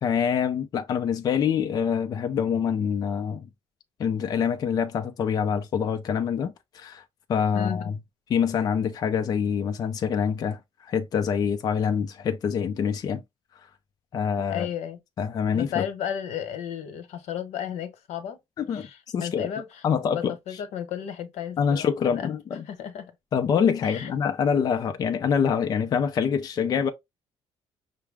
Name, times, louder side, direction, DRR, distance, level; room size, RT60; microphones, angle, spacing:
voice 1, 0.0-3.5 4.0-7.0 7.3-7.9 8.3-13.2 14.1-14.7 15.2-15.8 18.6-19.5 19.8-20.3 21.6-22.6 23.3-26.9, left 7 dB, 35° left, 0.4 m, -25 dB
voice 2, 7.5-7.9 14.5-15.0 15.5-18.4 18.7-19.8 20.1-23.1 23.8-24.1, left 9 dB, 85° left, 0.9 m, -34 dB
5.7 x 2.1 x 3.4 m
cardioid pair, 175°, 11 cm